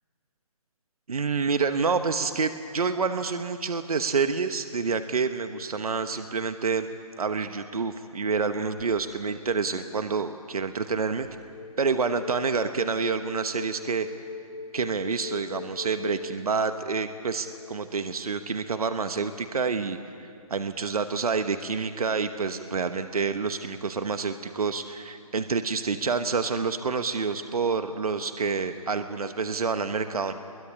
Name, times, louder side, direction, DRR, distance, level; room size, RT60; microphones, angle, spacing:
voice 1, 1.1-6.9 7.2-11.3 11.8-14.1 14.7-30.3, right 5 dB, 75° right, 9 dB, 1.2 m, -28 dB
sound 1, 9.0-9.5 11.2-18.9, left 3 dB, 75° left, 1.5 m, -42 dB
22.5 x 21.0 x 9.9 m, 2.6 s
figure-of-eight pair, 150°, 19 cm